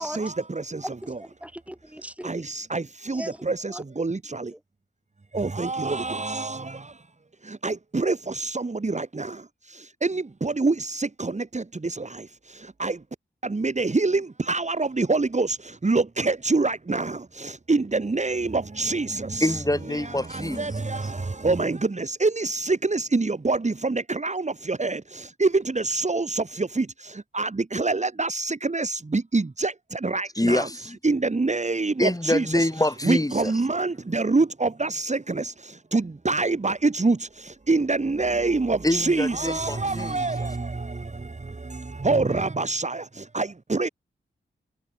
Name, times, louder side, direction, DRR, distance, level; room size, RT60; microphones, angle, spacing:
voice 1, 0.0-1.2 2.2-4.5 5.3-7.0 7.4-13.0 13.4-19.5 20.3-30.7 31.0-32.5 33.0-43.9, right 3 dB, 35° right, 2.0 m, -26 dB
voice 2, 0.8-2.3 3.1-3.8, equal, 5° right, 7.5 m, -38 dB
voice 3, 19.4-21.1 30.3-31.0 32.0-33.6 38.8-40.6, left 1 dB, 15° left, 6.3 m, -26 dB
cardioid pair, 45°, 20 cm